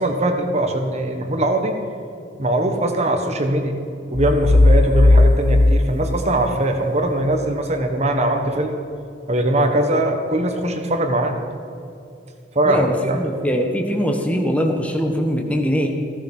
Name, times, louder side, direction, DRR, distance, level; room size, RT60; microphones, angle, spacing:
voice 1, 0.0-1.7 2.4-3.8 4.1-8.8 9.3-11.4 12.5-13.2, right 1 dB, 35° right, 4 dB, 1.4 m, -21 dB
sound 1, 4.1-7.0, left 2 dB, 85° left, 1.0 m, -15 dB
voice 2, 12.6-15.9, equal, 10° left, 2 dB, 1.5 m, -22 dB
15.5 x 14.0 x 5.6 m, 2.6 s
head